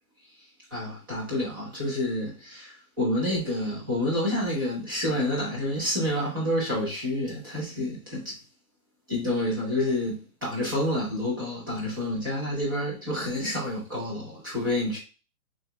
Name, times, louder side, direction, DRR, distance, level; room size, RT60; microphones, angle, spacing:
voice 1, 0.7-8.4 9.1-15.0, left 1 dB, 15° right, 1.0 m, -28 dB
6.9 x 2.8 x 2.2 m
hypercardioid pair, 180°, 44 cm